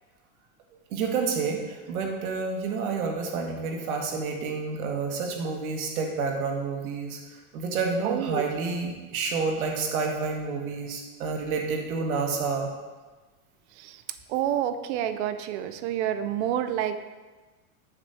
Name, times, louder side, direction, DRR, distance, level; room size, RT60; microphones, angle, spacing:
voice 1, 0.9-7.2 7.5-12.7, right 4 dB, 80° right, 1 dB, 1.4 m, -29 dB
voice 2, 8.0-8.4 13.8-14.0 14.3-17.0, right 11 dB, 55° right, 11 dB, 0.5 m, -28 dB
7.3 x 3.1 x 5.4 m, 1.3 s
supercardioid pair, 135°, 42 cm